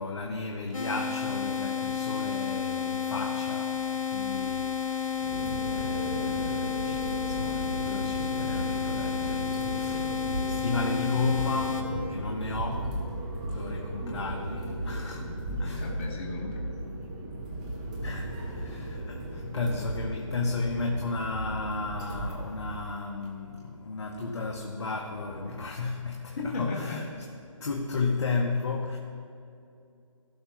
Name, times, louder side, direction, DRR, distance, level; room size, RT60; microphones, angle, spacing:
voice 1, 0.0-5.3 5.7-10.2 10.5-13.0 13.5-15.3 15.6-15.9 18.0-27.0 27.6-29.0, left 3 dB, 55° left, 1 dB, 0.9 m, -34 dB
sound 1, 0.7-11.8, left 7 dB, 75° left, 1.9 m, -31 dB
sound 2, 5.1-22.8, right 1 dB, 15° right, 0.7 m, -36 dB
voice 2, 15.6-16.7 26.4-27.0, left 3 dB, 25° left, -2 dB, 1.0 m, -35 dB
16.0 x 5.7 x 3.0 m, 2.5 s
figure-of-eight pair, 165°, 17 cm